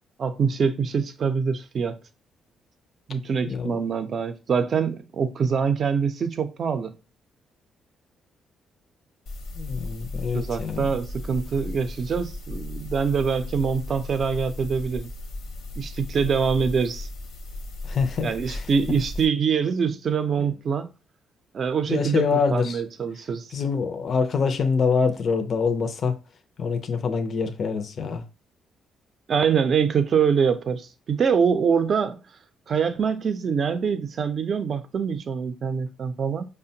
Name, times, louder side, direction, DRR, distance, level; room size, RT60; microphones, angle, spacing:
voice 1, 0.2-2.0 3.1-7.0 10.3-15.1 15.8-17.1 18.2-20.9 21.5-23.5 29.3-32.2 32.7-36.5, right 6 dB, 50° right, 0.5 m, -24 dB
voice 2, 3.5-3.8 9.6-10.9 17.8-18.7 20.4-20.5 21.9-22.8 23.5-26.2 26.6-28.2, left 5 dB, 55° left, 0.5 m, -25 dB
sound 1, 9.3-19.3, left 2 dB, 80° left, 0.8 m, -36 dB
5.0 x 2.2 x 2.7 m
cardioid pair, 90°, 0 cm